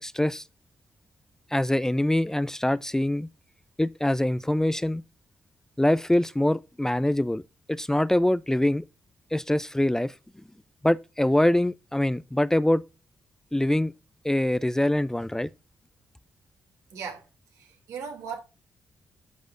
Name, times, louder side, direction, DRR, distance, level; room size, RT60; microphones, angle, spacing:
voice 1, 0.0-0.4 1.5-3.3 3.8-5.0 5.8-7.4 7.7-8.8 9.3-10.1 10.8-12.8 13.5-13.9 14.2-15.5, left 1 dB, 10° left, 0.5 m, -24 dB
voice 2, 16.9-17.2 17.6-18.4, right 6 dB, 75° right, 2.7 m, -37 dB
12.5 x 6.4 x 2.5 m
hypercardioid pair, 40°, 5 cm